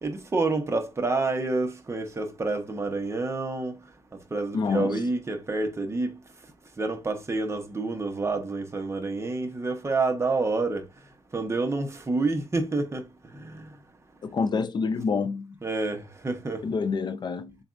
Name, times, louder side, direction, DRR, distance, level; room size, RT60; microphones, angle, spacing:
voice 1, 0.0-3.7 4.3-6.2 6.8-10.9 11.3-13.0 13.4-13.7 15.6-16.7, right 3 dB, 25° right, 1.0 m, -28 dB
voice 2, 4.5-5.0 14.2-15.6 16.6-17.6, left 5 dB, 45° left, 0.4 m, -27 dB
6.8 x 2.4 x 2.6 m
cardioid pair, 115°, 10 cm